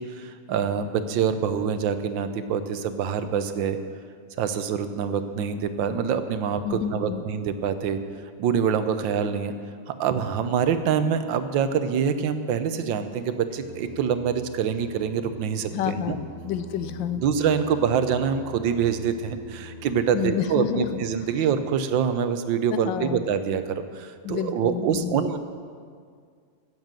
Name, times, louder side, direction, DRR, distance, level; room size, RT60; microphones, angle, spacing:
voice 1, 0.0-3.8 4.4-8.0 8.4-9.5 9.9-16.2 17.2-25.4, right 7 dB, 85° right, 10 dB, 1.5 m, -25 dB
voice 2, 6.6-7.2 15.7-17.2 20.1-21.0 22.7-23.2 24.2-25.2, left 9 dB, 80° left, 11 dB, 1.3 m, -29 dB
Singing, 13.5-21.4, right 2 dB, 40° right, 3.1 m, -43 dB
14.0 x 7.9 x 7.4 m, 2.1 s
omnidirectional pair, 2.0 m